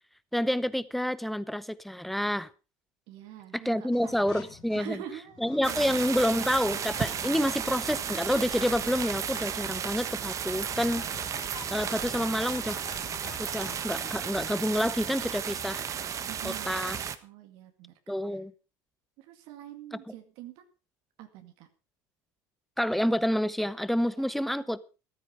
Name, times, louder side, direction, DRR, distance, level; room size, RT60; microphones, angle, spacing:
voice 1, 0.3-2.5 3.5-5.0 5.4-11.1 11.7-12.8 13.4-15.8 16.4-17.0 18.1-18.5 19.9-20.0 22.8-24.8, equal, ahead, 0.8 m, -28 dB
voice 2, 3.1-4.1 4.7-6.0 16.3-16.8 17.2-18.0 18.3-18.4 19.2-20.6 21.2-21.7 24.1-24.3, right 12 dB, 65° right, 2.2 m, -45 dB
sound 1, 3.9-13.9, left 8 dB, 45° left, 4.0 m, -48 dB
sound 2, 5.6-17.2, right 8 dB, 35° right, 1.4 m, -34 dB
14.0 x 13.0 x 5.0 m
supercardioid pair, 125°, 9 cm